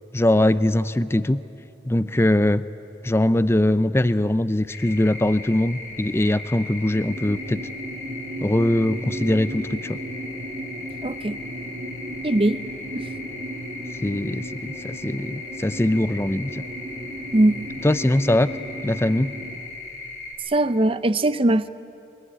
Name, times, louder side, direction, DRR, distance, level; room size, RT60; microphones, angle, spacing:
voice 1, 0.1-1.4 1.8-2.7 3.0-7.6 8.4-10.0 14.0-16.6 17.8-18.5 18.8-19.3, left 1 dB, 15° left, 14 dB, 0.5 m, -21 dB
sound 1, 4.7-20.3, left 2 dB, 90° left, 5.6 m, -38 dB
sound 2, 6.8-19.6, right 1 dB, 65° right, 4.3 m, -36 dB
voice 2, 11.0-11.4 12.2-12.7 12.9-13.1 17.3-17.7 20.5-21.7, right 1 dB, 30° right, 14 dB, 0.6 m, -20 dB
24.0 x 21.0 x 9.9 m, 2.8 s
head